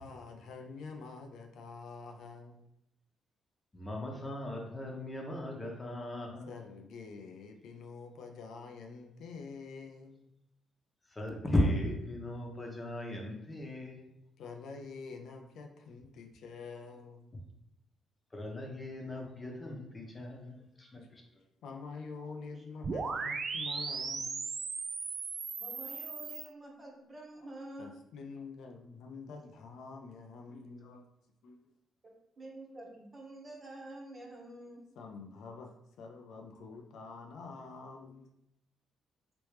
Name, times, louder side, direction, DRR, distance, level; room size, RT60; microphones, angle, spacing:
voice 1, 0.0-2.6 6.5-10.3 14.4-17.3 20.2-20.7 21.0-21.1 21.6-24.4 27.4-27.5 27.8-31.1 31.4-31.6 35.0-35.7 36.0-38.3, left 4 dB, 75° left, 3 dB, 0.4 m, -47 dB
voice 2, 3.7-6.5 11.1-14.1 18.3-21.2, left 1 dB, 25° left, 0 dB, 0.9 m, -36 dB
sound 1, 22.8-26.4, right 4 dB, 55° right, 0.4 m, -37 dB
voice 3, 25.6-27.9 32.0-34.8, right 1 dB, 35° right, -1 dB, 1.1 m, -48 dB
3.2 x 3.0 x 3.1 m, 0.80 s
supercardioid pair, 65°, 0 cm